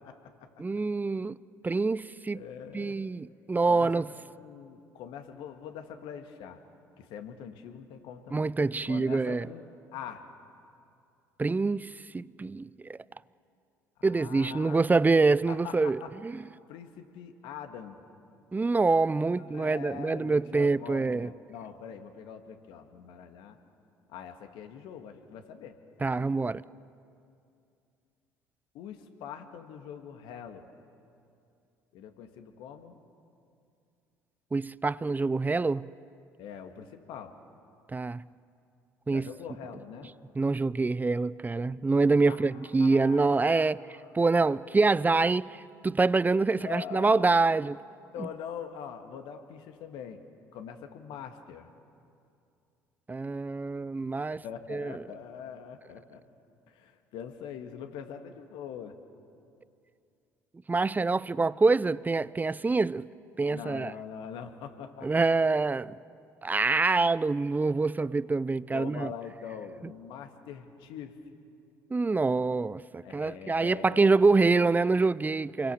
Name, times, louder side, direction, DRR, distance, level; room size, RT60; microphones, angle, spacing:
voice 1, 0.0-0.5 2.3-3.0 3.7-6.6 7.0-8.5 8.9-9.6 9.9-10.2 14.0-15.1 15.5-16.1 16.7-18.0 19.5-23.6 24.1-26.4 28.7-30.7 31.9-33.0 36.4-37.4 39.1-40.1 42.2-44.0 44.3-44.6 46.5-47.5 48.1-50.2 50.5-51.7 54.3-56.2 56.7-59.0 63.5-65.5 68.7-71.2 73.0-74.6, left 8 dB, 65° left, 2.0 m, -43 dB
voice 2, 0.6-1.4 1.6-2.4 2.7-4.1 8.3-9.5 11.4-12.7 14.0-16.4 18.5-21.3 26.0-26.6 34.5-35.9 37.9-38.2 39.1-39.3 40.4-43.8 44.1-47.8 48.2-48.3 53.1-54.4 54.7-55.0 60.7-63.0 63.4-63.9 65.0-66.0 66.4-69.1 71.9-75.7, right 3 dB, 20° right, 0.6 m, -26 dB
28.5 x 23.0 x 7.2 m
hypercardioid pair, 60°, 9 cm